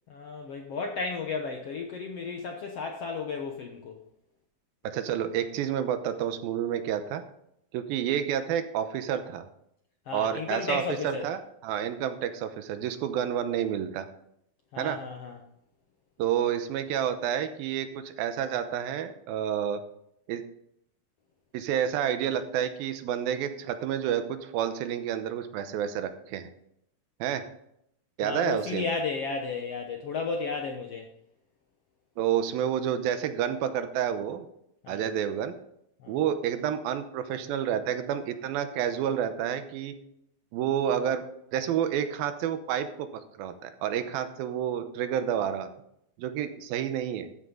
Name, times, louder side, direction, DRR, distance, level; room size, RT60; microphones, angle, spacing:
voice 1, 0.1-4.0 10.1-11.3 14.7-15.4 28.2-31.1 34.8-35.0 36.0-36.2, left 4 dB, 70° left, 2 dB, 1.5 m, -33 dB
voice 2, 4.8-7.2 7.7-9.5 10.1-11.4 11.6-14.1 14.8-15.0 16.2-19.8 20.3-20.4 21.5-26.5 27.2-27.5 28.2-28.9 32.2-34.5 34.9-35.6 36.1-39.9 40.5-41.2 41.5-45.7 46.2-47.3, right 9 dB, 90° right, 9 dB, 2.7 m, -29 dB
13.5 x 8.4 x 3.8 m, 0.75 s
omnidirectional pair, 4.2 m